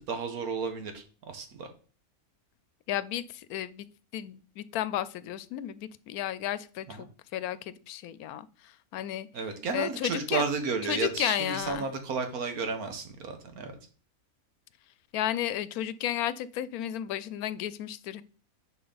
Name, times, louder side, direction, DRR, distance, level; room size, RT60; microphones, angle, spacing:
voice 1, 0.1-1.7 6.9-7.0 9.3-13.8, right 4 dB, 90° right, 7 dB, 1.7 m, -32 dB
voice 2, 2.9-3.9 4.1-9.3 9.7-10.5 10.9-11.9 15.1-18.2, left 12 dB, 85° left, 17 dB, 1.1 m, -33 dB
10.0 x 4.9 x 4.0 m, 0.41 s
omnidirectional pair, 1.5 m